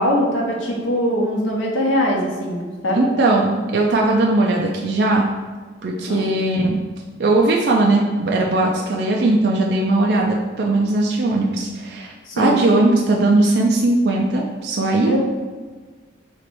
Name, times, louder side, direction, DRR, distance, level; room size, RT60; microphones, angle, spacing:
voice 1, 0.0-3.0 6.1-6.2 12.3-12.6 15.0-15.2, equal, 85° left, -3 dB, 0.8 m, -21 dB
voice 2, 3.0-5.3 5.8-6.8 7.2-15.2, right 2 dB, 60° right, -1 dB, 0.4 m, -18 dB
3.2 x 3.0 x 4.4 m, 1.4 s
head